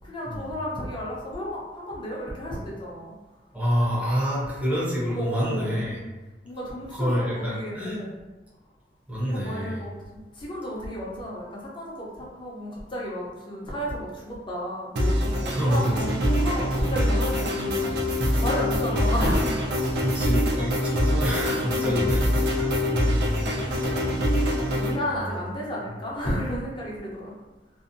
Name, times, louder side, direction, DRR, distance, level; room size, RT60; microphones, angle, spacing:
voice 1, 0.0-3.1 5.2-6.1 6.4-8.1 9.2-20.4 21.6-22.2 23.0-24.0 24.8-27.4, equal, 30° left, -5 dB, 0.6 m, -33 dB
voice 2, 3.5-6.0 6.9-8.0 9.1-9.8 15.5-16.2 20.0-22.2 22.5-23.7 25.1-25.2, equal, 10° right, -7 dB, 0.6 m, -27 dB
sound 1, 15.0-25.0, equal, 65° right, 0.5 m, -24 dB
2.6 x 2.1 x 2.5 m, 1.2 s
head